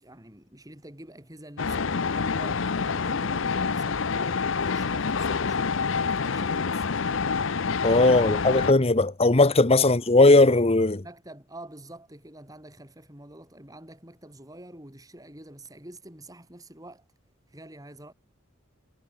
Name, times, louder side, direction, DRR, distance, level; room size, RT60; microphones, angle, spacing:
voice 1, 0.0-7.0 8.2-8.6 9.8-9.9 11.0-17.0 17.5-18.1, right 1 dB, 20° right, 5.2 m, -47 dB
sound 1, 1.6-8.7, left 5 dB, 70° left, 0.7 m, -27 dB
voice 2, 7.8-11.0, left 2 dB, 30° left, 1.0 m, -18 dB
head